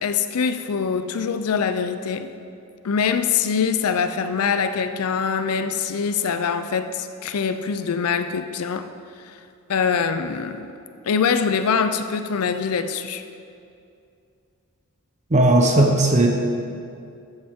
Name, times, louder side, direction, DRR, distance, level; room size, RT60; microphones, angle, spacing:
voice 1, 0.0-2.3 2.8-8.9 9.3-9.4 9.7-10.7 11.1-13.2, left 6 dB, 80° left, 10 dB, 0.5 m, -23 dB
voice 2, 15.3-16.3, right 2 dB, 35° right, 1 dB, 0.8 m, -16 dB
14.0 x 8.0 x 3.6 m, 2.5 s
head